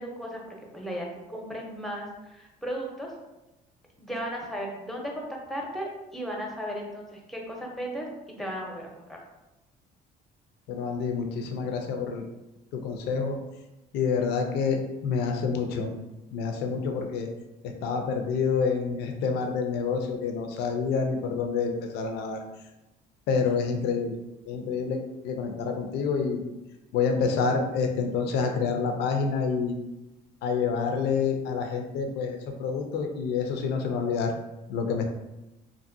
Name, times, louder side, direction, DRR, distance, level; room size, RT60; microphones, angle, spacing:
voice 1, 0.0-3.1 4.0-8.1 8.4-9.2, equal, ahead, -1 dB, 0.6 m, -35 dB
voice 2, 10.7-12.2 12.7-13.4 13.9-15.9 16.3-17.3 17.8-22.4 23.3-24.2 24.5-26.4 26.9-29.7 30.4-34.3 34.7-35.1, left 5 dB, 75° left, 4 dB, 0.4 m, -28 dB
2.6 x 2.5 x 2.5 m, 0.99 s
cardioid pair, 110°, 17 cm